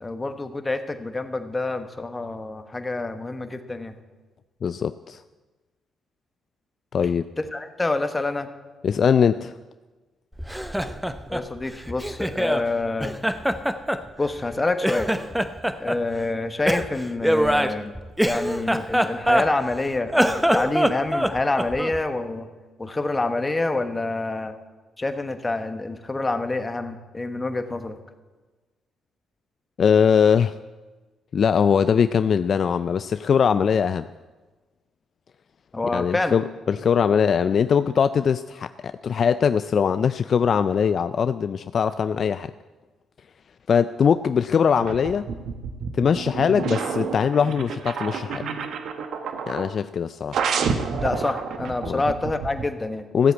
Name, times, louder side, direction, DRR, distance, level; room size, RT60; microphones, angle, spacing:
voice 1, 0.0-3.9 7.4-8.5 11.3-13.2 14.2-15.1 15.8-17.9 18.2-22.5 22.8-24.5 25.0-28.0 35.7-36.4 51.0-53.1, left 2 dB, 20° left, 8 dB, 1.3 m, -27 dB
voice 2, 4.6-5.2 6.9-7.2 8.8-9.5 29.8-30.6 31.3-34.1 35.9-42.5 43.7-45.3 45.9-48.4 49.5-50.4 51.9-52.0 53.1-53.3, left 7 dB, 50° left, 12 dB, 0.4 m, -21 dB
Laughter, 10.4-12.7 13.0-14.5 14.8-16.0 16.6-19.7 20.1-22.0, equal, 5° right, 0.8 m, -24 dB
sound 1, 44.7-49.8 50.3-52.7, right 5 dB, 70° right, 1.1 m, -29 dB
14.5 x 8.0 x 8.3 m, 1.3 s
cardioid pair, 90°, 0 cm